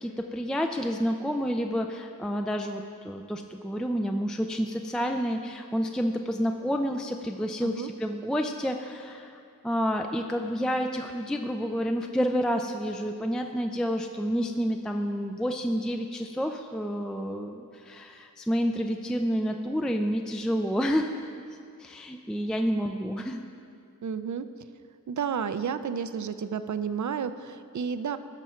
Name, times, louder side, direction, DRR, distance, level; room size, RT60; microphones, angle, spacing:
voice 1, 0.0-21.1 21.8-23.4, equal, ahead, 4 dB, 0.4 m, -29 dB
voice 2, 24.0-24.5 25.1-28.2, right 7 dB, 60° right, 12 dB, 0.5 m, -31 dB
14.5 x 6.1 x 4.4 m, 2.5 s
wide cardioid pair, 65°, 34 cm